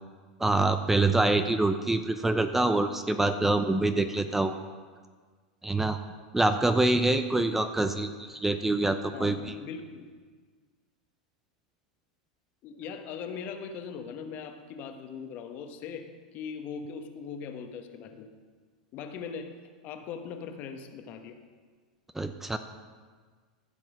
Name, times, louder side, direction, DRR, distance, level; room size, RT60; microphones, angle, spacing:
voice 1, 0.4-4.5 5.6-6.0 6.3-9.5 22.1-22.6, right 2 dB, 5° right, 9 dB, 0.6 m, -25 dB
voice 2, 9.1-10.1 12.6-18.3 18.9-19.5 19.8-21.4, left 6 dB, 45° left, 6 dB, 1.2 m, -40 dB
15.0 x 6.0 x 5.2 m, 1.6 s
hypercardioid pair, 95°, 4 cm